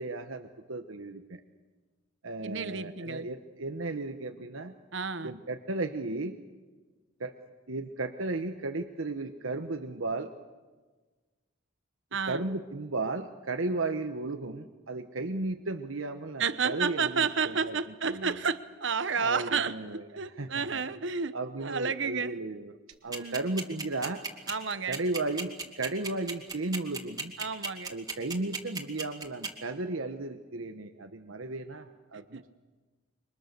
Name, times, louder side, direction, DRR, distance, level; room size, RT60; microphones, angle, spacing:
voice 1, 0.0-1.4 2.2-4.7 5.2-6.4 7.2-7.3 7.7-10.3 12.3-17.8 18.0-18.3 19.2-20.0 20.4-20.8 21.3-22.7 23.0-24.2 24.9-27.3 27.9-32.5, right 2 dB, 80° right, 6 dB, 1.2 m, -35 dB
voice 2, 2.4-3.3 4.9-5.3 12.1-12.4 16.4-22.4 23.1-23.4 24.5-25.0 27.4-27.9 32.1-32.4, right 5 dB, 60° right, 13 dB, 1.1 m, -31 dB
sound 1, 23.1-29.5, right 4 dB, 20° right, 2.2 m, -34 dB
28.0 x 24.0 x 6.8 m, 1.3 s
head